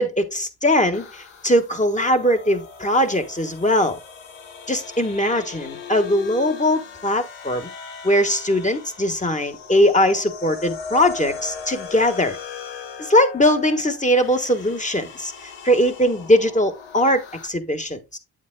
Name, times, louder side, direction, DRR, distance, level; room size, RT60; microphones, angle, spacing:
voice 1, 0.0-4.0 4.7-7.7 8.0-12.4 13.0-15.3 15.6-18.2, equal, 15° left, 1.5 m, -20 dB
sound 1, 0.9-17.5, left 6 dB, 85° left, 1.2 m, -39 dB
8.4 x 7.3 x 2.3 m
supercardioid pair, 45°, 45 cm